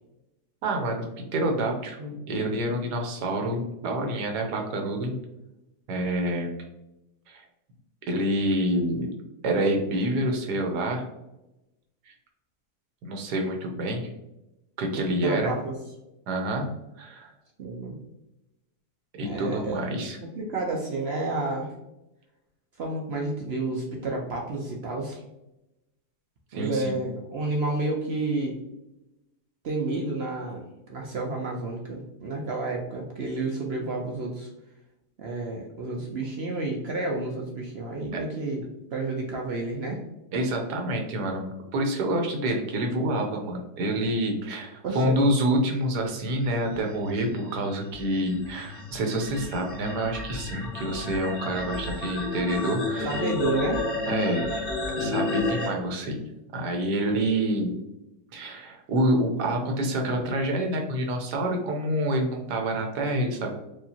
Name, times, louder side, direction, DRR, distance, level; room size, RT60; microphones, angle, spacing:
voice 1, 0.6-5.1 5.9-6.6 7.3-7.4 8.1-9.1 9.4-11.0 12.1-12.2 13.0-14.1 14.8-15.5 16.3-16.7 17.0-17.3 19.2-20.2 26.5-26.9 38.1-38.2 40.3-41.4 41.7-53.3 54.1-56.2 56.5-57.7 58.3-63.5, right 1 dB, 85° right, 2 dB, 1.4 m, -27 dB
voice 2, 14.9-15.8 17.6-18.0 19.2-19.8 20.2-21.7 22.8-25.2 26.5-28.6 29.6-30.6 30.9-34.5 35.2-38.6 38.9-40.0 44.8-45.3 53.0-53.8, right 2 dB, 60° right, -1 dB, 0.7 m, -30 dB
sound 1, 46.4-55.7, left 3 dB, 55° left, 1.6 m, -32 dB
4.7 x 2.7 x 2.8 m, 0.92 s
omnidirectional pair, 1.7 m